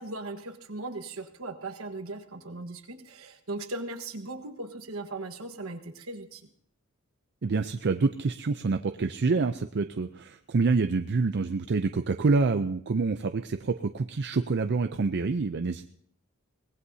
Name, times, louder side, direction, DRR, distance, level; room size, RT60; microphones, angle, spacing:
voice 1, 0.0-6.5, right 2 dB, 70° right, 7 dB, 1.4 m, -38 dB
voice 2, 7.4-15.8, right 4 dB, 50° right, 8 dB, 0.5 m, -27 dB
23.5 x 19.0 x 2.8 m, 0.66 s
head